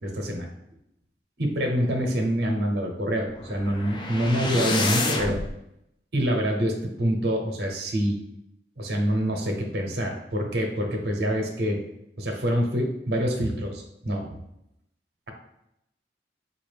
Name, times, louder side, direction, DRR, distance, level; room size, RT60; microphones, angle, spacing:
voice 1, 0.0-0.5 1.4-5.4 6.1-8.2 8.8-11.8 12.2-14.3, equal, 65° right, 2 dB, 0.8 m, -26 dB
sound 1, 3.3-5.5, left 2 dB, 25° left, 0.4 m, -28 dB
4.0 x 2.5 x 3.3 m, 0.80 s
head